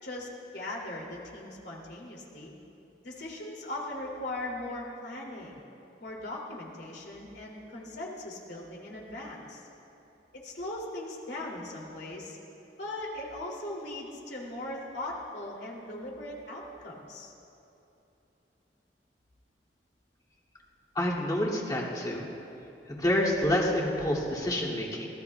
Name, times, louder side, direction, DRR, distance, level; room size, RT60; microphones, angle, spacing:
voice 1, 0.0-2.5 3.0-5.6 6.0-9.6 10.3-12.4 12.8-17.3, left 1 dB, 70° left, -3 dB, 2.9 m, -39 dB
voice 2, 20.9-22.2 22.9-25.1, left 1 dB, 25° left, -6 dB, 2.7 m, -28 dB
24.5 x 18.5 x 2.4 m, 2.9 s
head